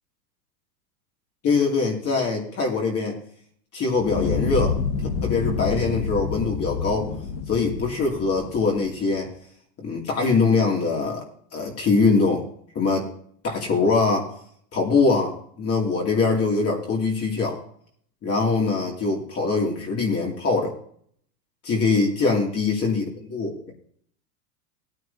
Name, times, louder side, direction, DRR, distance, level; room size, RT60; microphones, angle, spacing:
voice 1, 1.4-3.2 3.7-4.8 5.2-7.1 7.5-9.3 9.8-11.3 11.5-12.4 12.7-13.1 13.4-14.3 14.7-17.6 18.2-20.7 21.6-23.7, left 4 dB, 30° left, -1 dB, 2.6 m, -23 dB
Fire, 3.9-9.1, left 5 dB, 60° left, 1.8 m, -28 dB
16.5 x 9.6 x 2.8 m, 0.62 s
hypercardioid pair, 115°, 50 cm